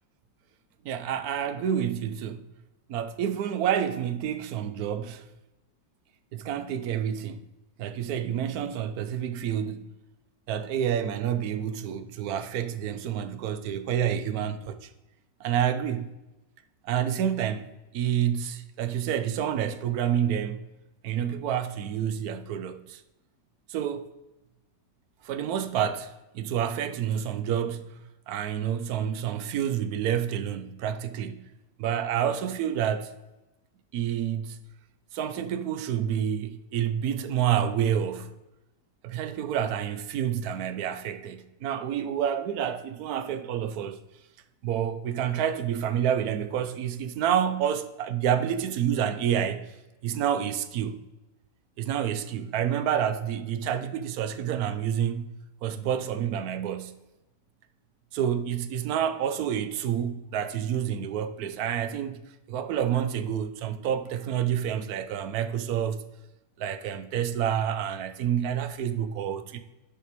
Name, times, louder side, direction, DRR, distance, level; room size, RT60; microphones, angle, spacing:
voice 1, 0.8-2.5 2.9-5.3 6.3-7.4 7.8-9.8 10.5-14.9 15.4-16.1 16.8-20.6 21.0-23.0 23.7-24.1 25.2-28.0 28.3-31.4 31.8-33.1 33.9-34.7 35.1-38.3 39.0-44.0 44.6-49.6 50.0-51.0 51.8-56.9 58.1-62.2 62.5-66.0 66.6-69.6, right 9 dB, 65° right, 1.0 m, -28 dB
6.8 x 6.0 x 4.5 m
omnidirectional pair, 1.9 m